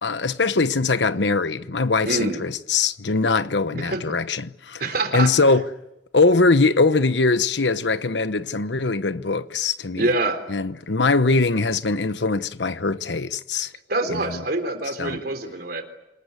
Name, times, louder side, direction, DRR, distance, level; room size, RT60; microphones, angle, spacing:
voice 1, 0.0-4.8 5.1-5.7 6.1-10.1 10.5-13.7 14.1-14.4 15.0-15.2, left 3 dB, 80° left, 1.0 m, -22 dB
voice 2, 2.0-2.4 3.7-4.0 4.8-5.3 10.0-10.4 13.9-15.8, right 2 dB, 60° right, 3.7 m, -25 dB
27.5 x 20.5 x 9.6 m
head